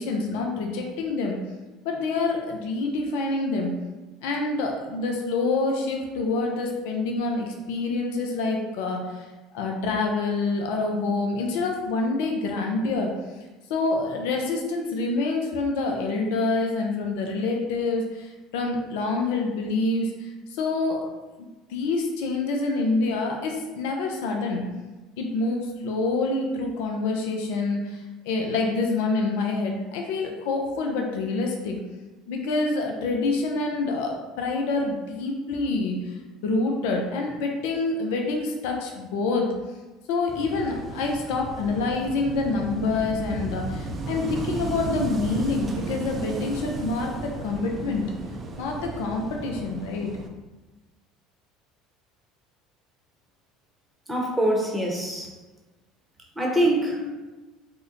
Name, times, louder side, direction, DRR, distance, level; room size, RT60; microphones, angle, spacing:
voice 1, 0.0-1.4 1.8-3.7 4.2-9.3 9.5-13.1 13.7-21.0 21.7-24.6 25.2-31.8 32.3-39.5 40.1-48.1 48.6-50.1, left 3 dB, 75° left, 1 dB, 0.4 m, -27 dB
Wind / Waves surf, 40.3-50.3, right 3 dB, 35° right, 0.4 m, -34 dB
voice 2, 54.1-55.4 56.3-57.1, right 1 dB, 10° right, -1 dB, 0.8 m, -24 dB
2.7 x 2.1 x 3.7 m, 1.2 s
hypercardioid pair, 80°, 0 cm